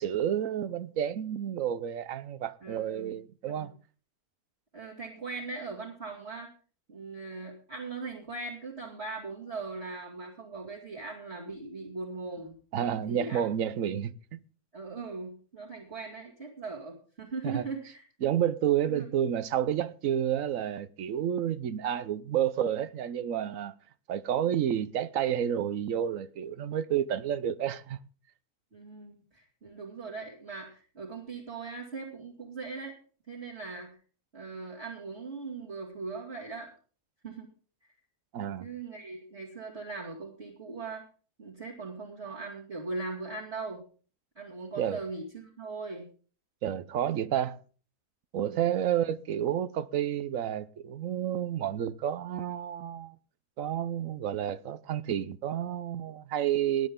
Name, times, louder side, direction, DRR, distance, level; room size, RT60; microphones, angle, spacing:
voice 1, 0.0-3.7 12.7-14.4 17.4-17.7 18.2-23.7 24.1-28.0 38.3-38.7 44.8-45.0 46.6-47.6 48.3-53.2 53.6-56.9, right 10 dB, 65° right, 1.1 m, -30 dB
voice 2, 2.6-3.1 3.4-3.7 4.7-6.5 6.9-13.4 14.7-18.3 18.9-19.1 28.7-32.9 33.3-34.0 34.3-36.7 37.2-37.5 38.6-41.0 41.4-43.8 44.4-46.1 48.4-48.8, right 3 dB, 45° right, 2.6 m, -40 dB
18.5 x 10.0 x 3.7 m
omnidirectional pair, 1.6 m